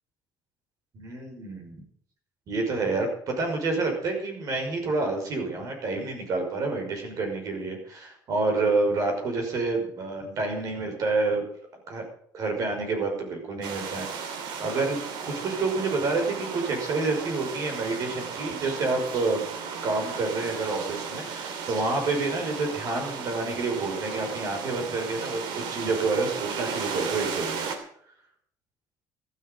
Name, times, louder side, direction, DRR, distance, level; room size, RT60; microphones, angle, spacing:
voice 1, 0.9-1.8 2.5-11.4 11.9-12.0 12.3-15.0 15.2-19.5 19.8-27.7, right 3 dB, 50° right, 3 dB, 5.7 m, -28 dB
sound 1, 13.6-27.8, right 6 dB, 75° right, 2.9 m, -35 dB
15.5 x 12.5 x 5.3 m, 0.63 s
cardioid pair, 145°, 8 cm